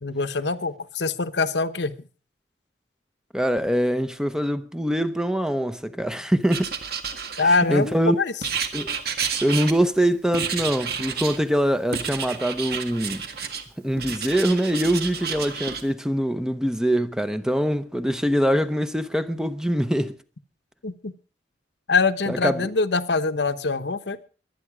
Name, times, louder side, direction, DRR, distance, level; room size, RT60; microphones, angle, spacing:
voice 1, 0.0-2.0 7.4-8.3 20.8-21.1 21.9-24.2, left 4 dB, 75° left, 1.0 m, -24 dB
voice 2, 3.3-6.7 7.7-8.2 8.7-9.0 9.4-13.2 13.8-20.2 22.3-22.7, equal, 5° right, 0.8 m, -23 dB
Writing, 6.5-7.8 8.4-10.0 10.3-11.4 11.9-13.6 14.0-15.8, right 6 dB, 60° right, 1.8 m, -30 dB
22.5 x 9.2 x 4.9 m
head